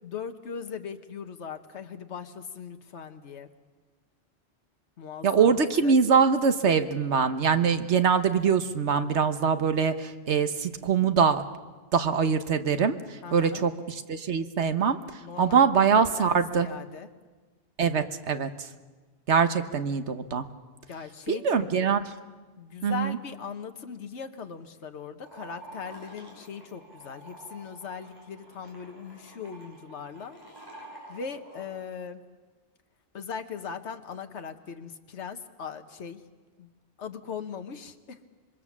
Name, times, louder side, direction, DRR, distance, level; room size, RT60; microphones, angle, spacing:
voice 1, 0.0-3.5 5.0-6.0 13.2-13.6 15.2-17.1 20.9-22.0 22.6-30.4 31.1-32.2 33.1-36.2 36.6-36.7 37.0-38.2, left 6 dB, 75° left, 7 dB, 1.4 m, -39 dB
voice 2, 5.2-11.4 11.9-13.0 13.3-15.0 15.4-16.7 17.8-18.5 19.3-20.4 21.3-22.0 22.8-23.2, right 6 dB, 75° right, 10 dB, 1.4 m, -23 dB
sound 1, 25.2-31.7, right 1 dB, 20° right, 6.1 m, -48 dB
26.0 x 22.0 x 7.3 m, 1.3 s
omnidirectional pair, 1.2 m